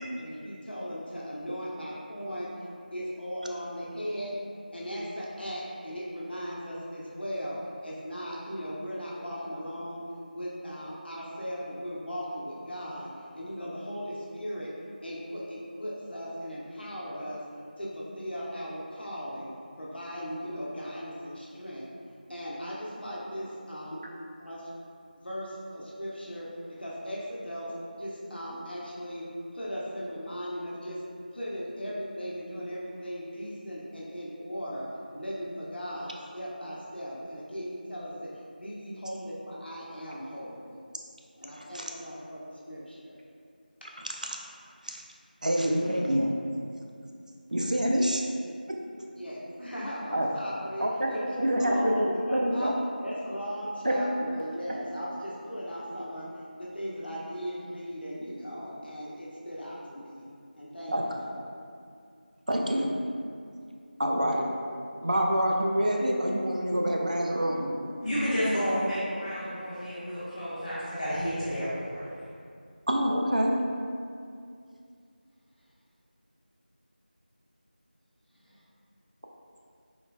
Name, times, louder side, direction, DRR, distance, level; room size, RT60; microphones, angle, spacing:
voice 1, 0.1-2.5 2.9-4.3 4.7-10.0 10.3-14.7 15.0-17.4 17.8-19.5 19.8-21.9 22.3-24.0 24.4-24.7 25.2-27.7 28.0-29.3 29.5-31.0 31.3-38.3 38.6-40.8 41.4-43.2 43.8-43.9 49.2-52.7 53.0-56.3 56.6-60.3 60.6-61.3 78.3-78.6, equal, 80° left, 0.8 m, -37 dB
voice 2, 41.6-41.9 44.8-45.0 45.4-46.3 47.5-48.2 50.1-50.4 50.8-51.1 51.4-52.7 53.8-53.9 60.9-61.0 62.5-62.9 64.0-64.5 65.0-67.7 72.9-73.6, equal, 50° right, 0.3 m, -26 dB
voice 3, 68.0-72.0, equal, 30° left, 0.5 m, -30 dB
3.7 x 2.2 x 2.3 m
figure-of-eight pair, 175°, 5 cm